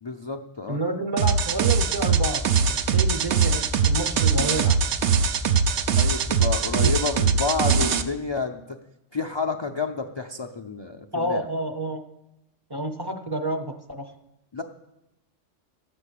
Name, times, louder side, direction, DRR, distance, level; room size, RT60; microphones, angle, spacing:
voice 1, 0.0-0.8 5.9-8.6 9.1-11.5 14.5-14.6, left 4 dB, 40° left, 4 dB, 0.3 m, -29 dB
voice 2, 0.7-2.4 2.9-4.8 6.8-7.0 11.1-12.0 12.7-14.1, right 1 dB, 25° right, 4 dB, 0.7 m, -29 dB
sound 1, 1.2-8.0, right 6 dB, 70° right, 1.0 m, -21 dB
13.5 x 6.1 x 8.3 m, 0.89 s
omnidirectional pair, 1.3 m